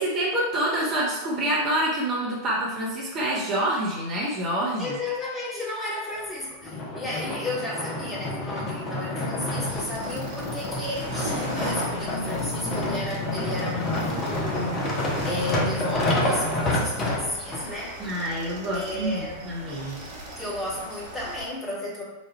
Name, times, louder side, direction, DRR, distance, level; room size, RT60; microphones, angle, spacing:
voice 1, 0.0-5.0 18.0-20.0, right 1 dB, 30° right, -5 dB, 1.0 m, -27 dB
voice 2, 4.8-14.8 15.2-17.9 18.7-19.5 20.4-22.0, left 1 dB, 10° left, -6 dB, 1.4 m, -33 dB
sound 1, 6.6-17.6 18.3-18.4, left 1 dB, 30° left, 0.9 m, -28 dB
sound 2, 9.6-21.5, right 1 dB, 50° right, 1.5 m, -39 dB
4.1 x 2.6 x 4.3 m, 1.1 s
figure-of-eight pair, 90°, 0 cm